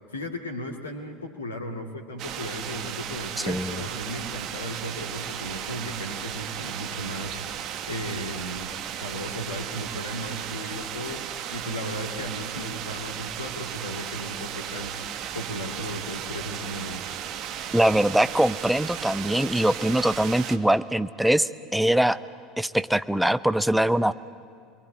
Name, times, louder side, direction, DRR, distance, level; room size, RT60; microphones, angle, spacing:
voice 1, 0.1-7.4 7.9-8.7 8.9-11.2 11.5-14.9 15.3-17.0, equal, 80° left, 2 dB, 2.2 m, -35 dB
sound 1, 2.2-20.6, right 9 dB, 45° right, 1.5 m, -35 dB
voice 2, 3.4-3.8 17.7-22.2 22.6-24.1, right 1 dB, 5° right, 14 dB, 0.8 m, -22 dB
28.0 x 22.0 x 9.5 m, 2.2 s
figure-of-eight pair, 70°, 0 cm